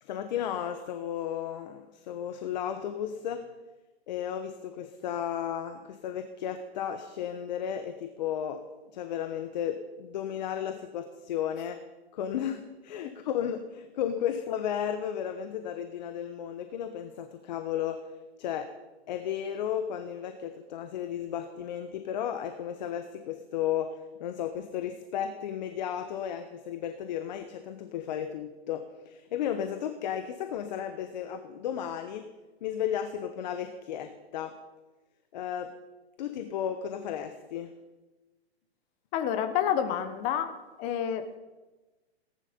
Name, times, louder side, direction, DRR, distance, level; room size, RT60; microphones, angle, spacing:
voice 1, 0.0-3.5 4.1-8.6 8.9-11.8 12.1-18.1 18.4-18.7 19.1-32.3 32.6-34.6 35.3-35.7 36.2-37.7, left 9 dB, 40° left, 8 dB, 1.1 m, -34 dB
voice 2, 39.1-40.5 40.8-41.2, left 9 dB, 20° left, 9 dB, 1.0 m, -28 dB
18.5 x 11.0 x 5.2 m, 1.2 s
hypercardioid pair, 155°, 33 cm